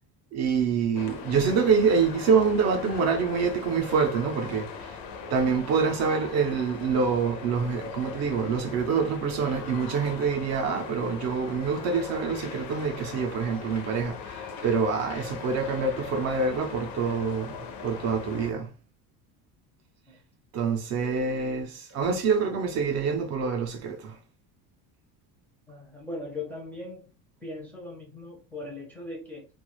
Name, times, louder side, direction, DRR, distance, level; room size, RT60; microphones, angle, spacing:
voice 1, 0.3-5.0 5.3-18.7 20.5-24.2, right 5 dB, 45° right, 0.6 m, -26 dB
sound 1, 0.9-18.5, left 6 dB, 60° left, 0.6 m, -39 dB
voice 2, 25.7-27.1 27.4-29.5, left 2 dB, 5° left, 0.5 m, -39 dB
2.3 x 2.3 x 3.0 m
cardioid pair, 175°, 38 cm